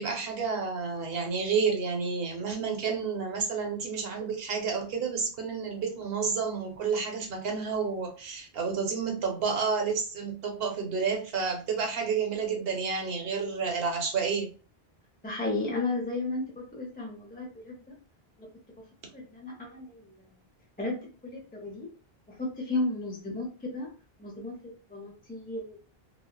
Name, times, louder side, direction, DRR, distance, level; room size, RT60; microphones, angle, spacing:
voice 1, 0.0-14.5, right 5 dB, 70° right, 3 dB, 0.9 m, -30 dB
voice 2, 15.2-16.4 16.7-17.7 18.4-18.5 19.1-20.1 20.8-21.0 21.2-21.9 22.3-23.5 23.7-23.9 24.2-24.6 24.9-25.8, left 2 dB, 10° left, -1 dB, 0.4 m, -33 dB
3.3 x 2.1 x 2.2 m, 0.37 s
omnidirectional pair, 1.0 m